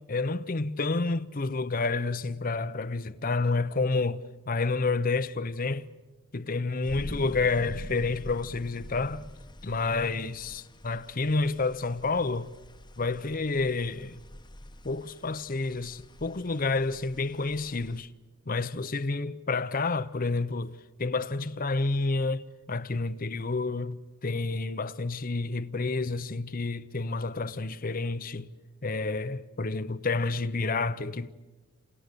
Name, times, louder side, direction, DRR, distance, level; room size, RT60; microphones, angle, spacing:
voice 1, 0.0-5.9 6.3-9.3 9.6-12.5 13.0-14.2 14.8-18.1 18.5-28.5 28.8-31.3, left 3 dB, 40° left, 0.8 m, -29 dB
sound 1, 6.8-18.0, left 1 dB, 20° left, 1.1 m, -45 dB
29.0 x 28.5 x 6.8 m
head